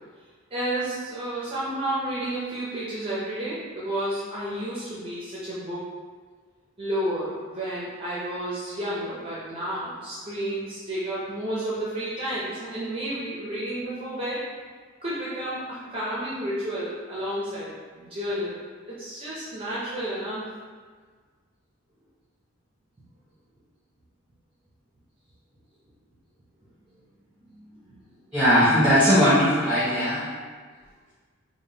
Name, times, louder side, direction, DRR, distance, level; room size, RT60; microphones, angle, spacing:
voice 1, 0.5-5.9 6.8-14.4 15.0-18.6 18.9-20.5 27.0-27.1 27.5-28.3, right 1 dB, 25° right, -9 dB, 0.6 m, -31 dB
voice 2, 28.3-30.3, equal, 5° right, -14 dB, 1.0 m, -19 dB
3.6 x 2.2 x 3.9 m, 1.5 s
head